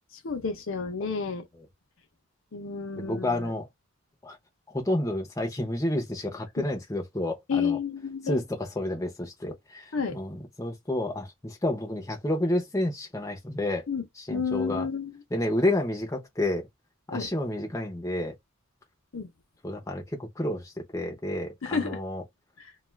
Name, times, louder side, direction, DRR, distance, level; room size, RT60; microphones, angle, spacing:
voice 1, 0.2-1.5 2.5-3.5 6.6-6.7 7.5-8.4 9.9-10.2 13.9-14.0 14.3-15.1 17.1-17.3 19.1-19.3 21.6-22.0, left 5 dB, 60° left, 0.6 m, -30 dB
voice 2, 3.0-3.7 4.2-4.4 4.7-7.8 8.2-13.8 14.2-14.9 15.3-16.7 17.1-18.3 19.6-22.2, left 1 dB, 15° left, 0.6 m, -30 dB
2.3 x 2.3 x 3.1 m
head